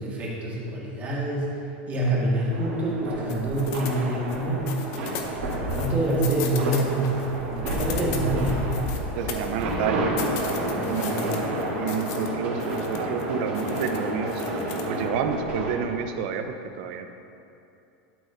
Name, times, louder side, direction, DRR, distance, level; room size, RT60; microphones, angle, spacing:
voice 1, 0.0-1.6 1.9-4.8 5.5-8.8 10.7-11.4, right 1 dB, 25° right, -5 dB, 1.8 m, -27 dB
sound 1, 2.5-15.7, right 1 dB, 85° right, 1.9 m, -30 dB
sound 2, 3.3-4.4 4.7-7.3 7.6-9.8 10.2-12.3 12.6-13.2 13.5-15.0, left 7 dB, 45° left, 0.8 m, -37 dB
voice 2, 9.1-10.1 10.9-11.4 11.8-14.4 14.9-17.1, right 7 dB, 60° right, 7 dB, 0.6 m, -30 dB
12.0 x 4.2 x 3.8 m, 2.8 s
supercardioid pair, 140°, 6 cm